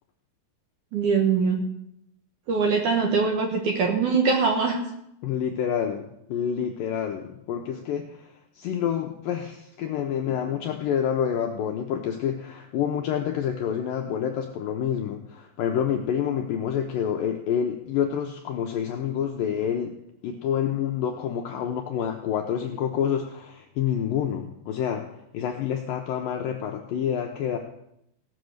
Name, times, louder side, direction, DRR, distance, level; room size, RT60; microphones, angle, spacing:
voice 1, 0.9-1.6 2.5-4.8, right 5 dB, 65° right, 2 dB, 2.1 m, -22 dB
voice 2, 5.2-20.0 20.2-27.6, left 8 dB, 85° left, 3 dB, 2.0 m, -28 dB
17.5 x 6.3 x 6.5 m, 0.79 s
omnidirectional pair, 4.9 m